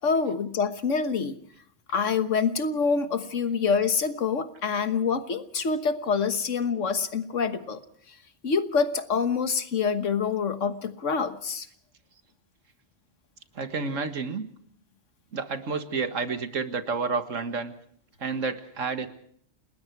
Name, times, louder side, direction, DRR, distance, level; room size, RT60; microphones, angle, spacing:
voice 1, 0.0-1.4 1.9-7.8 8.1-8.2 8.4-11.7, left 5 dB, 75° left, 10 dB, 1.6 m, -26 dB
voice 2, 13.6-14.4 15.3-17.7 18.2-19.1, right 4 dB, 80° right, 9 dB, 2.0 m, -30 dB
29.5 x 19.5 x 4.7 m, 0.62 s
omnidirectional pair, 1.3 m